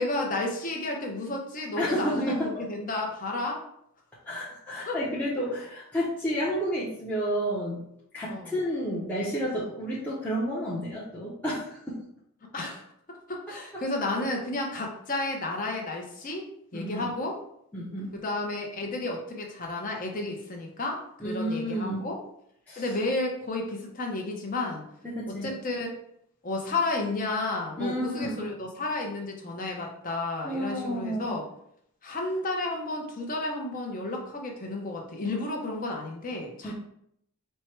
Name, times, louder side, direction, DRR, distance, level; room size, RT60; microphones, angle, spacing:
voice 1, 0.0-3.6 4.9-5.0 8.3-8.5 12.5-12.8 13.1-17.4 18.1-22.2 22.8-24.8 25.3-25.9 26.4-31.4 32.0-36.7, left 2 dB, 40° left, 1 dB, 0.8 m, -32 dB
voice 2, 1.8-2.6 4.3-7.8 8.1-12.0 13.7-13.8 16.7-17.1 17.7-18.1 21.2-22.1 22.7-22.8 25.0-25.5 27.8-28.5 30.4-31.3 36.6-36.7, equal, 5° left, -9 dB, 0.7 m, -31 dB
4.4 x 2.2 x 4.4 m, 0.71 s
head